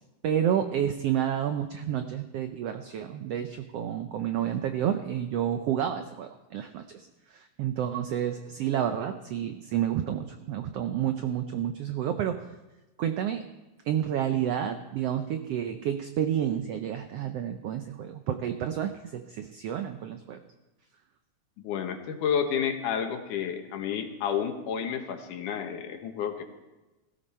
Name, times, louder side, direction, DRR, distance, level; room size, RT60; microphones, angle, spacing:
voice 1, 0.2-12.5 13.0-13.4 13.8-20.4, right 10 dB, 80° right, 8 dB, 1.4 m, -30 dB
voice 2, 21.6-26.4, left 8 dB, 75° left, 5 dB, 2.8 m, -30 dB
18.0 x 15.5 x 4.3 m, 1.1 s
omnidirectional pair, 3.7 m